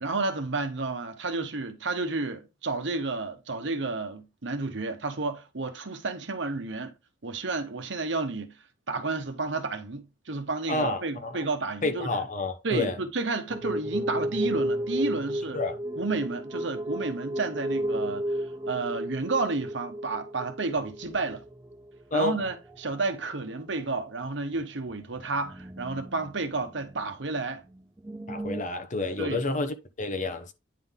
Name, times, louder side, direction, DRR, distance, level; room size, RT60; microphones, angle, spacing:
voice 1, 0.0-6.9 7.2-8.5 8.9-12.1 12.6-15.6 16.0-18.2 18.7-21.4 22.1-27.6 29.2-29.4, right 3 dB, 75° right, 1.1 m, -31 dB
voice 2, 10.7-11.4 11.8-13.0 15.5-15.8 22.1-22.4 28.3-30.5, left 2 dB, 40° left, 1.0 m, -29 dB
sound 1, 13.5-22.0 22.3-22.9 23.2-23.3 23.8-23.9 24.9-27.0 27.4-27.5 27.7-28.6, right 1 dB, 15° right, 0.4 m, -33 dB
9.4 x 3.9 x 3.7 m
head